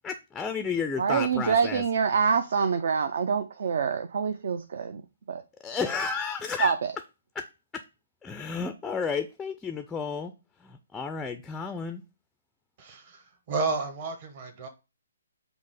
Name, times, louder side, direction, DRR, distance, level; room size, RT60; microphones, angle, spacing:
voice 1, 0.0-1.8 5.6-6.7 7.4-7.5 7.7-7.8 8.2-10.3 10.6-12.0, left 5 dB, 10° left, 0.3 m, -32 dB
voice 2, 1.0-5.0 5.3-5.4 6.6-6.9, right 6 dB, 60° right, 0.4 m, -26 dB
voice 3, 12.8-14.7, right 3 dB, 40° right, 1.0 m, -32 dB
5.3 x 2.0 x 4.7 m
figure-of-eight pair, 135°, 0 cm